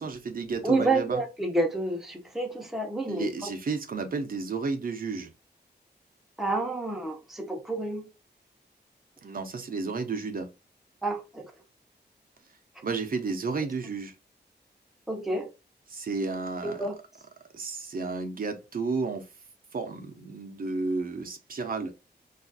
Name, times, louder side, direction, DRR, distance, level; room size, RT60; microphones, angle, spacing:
voice 1, 0.0-1.2 3.1-5.3 9.2-10.5 12.8-14.1 15.9-16.9 17.5-19.3 19.7-21.9, right 4 dB, 55° right, 0.5 m, -32 dB
voice 2, 0.6-3.3 6.4-8.1 11.0-11.5 15.1-15.5 16.6-17.0, right 2 dB, ahead, 0.6 m, -29 dB
3.3 x 2.3 x 2.5 m
wide cardioid pair, 120°, 18 cm